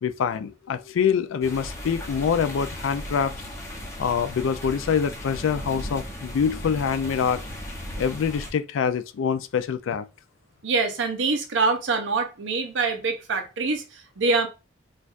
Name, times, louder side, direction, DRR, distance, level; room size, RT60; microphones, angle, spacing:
voice 1, 0.0-3.3 4.0-7.4 8.0-10.1, left 7 dB, 80° left, 0.3 m, -25 dB
sound 1, 1.4-8.5, equal, 15° left, 0.8 m, -36 dB
voice 2, 10.6-14.5, right 4 dB, 70° right, 0.7 m, -25 dB
4.3 x 2.4 x 2.4 m
head